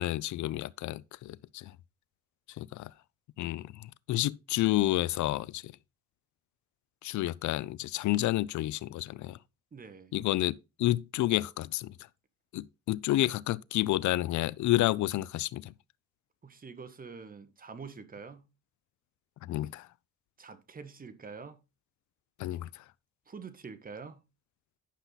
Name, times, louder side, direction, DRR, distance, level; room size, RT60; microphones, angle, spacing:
voice 1, 0.0-1.8 2.5-2.9 3.4-5.7 7.0-9.4 10.1-12.0 12.5-15.7 19.4-19.9 22.4-22.8, left 15 dB, 70° left, 0.5 m, -30 dB
voice 2, 9.7-10.1 16.4-18.5 20.4-21.6 23.3-24.2, right 5 dB, 30° right, 1.4 m, -46 dB
10.5 x 5.6 x 4.0 m
cardioid pair, 90°, 30 cm